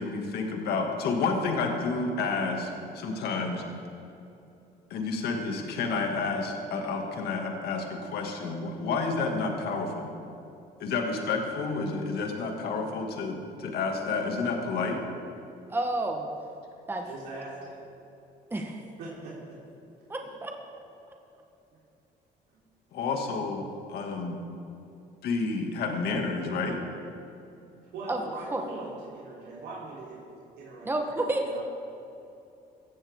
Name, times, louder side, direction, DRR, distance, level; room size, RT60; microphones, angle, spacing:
voice 1, 0.0-3.6 4.9-10.1 10.8-15.0 22.9-24.4 25.2-26.8, left 4 dB, 70° left, 2 dB, 2.2 m, -30 dB
voice 2, 15.7-16.3 16.9-17.1 18.5-18.8 20.1-20.5 28.1-28.2 28.5-28.6 30.8-31.6, right 2 dB, 15° right, 2 dB, 1.2 m, -30 dB
voice 3, 17.0-17.7 19.0-19.6 20.2-20.3 27.9-30.2 30.6-31.6, right 3 dB, 80° right, -6 dB, 3.6 m, -41 dB
17.0 x 14.5 x 3.7 m, 2.8 s
cardioid pair, 110°, 17 cm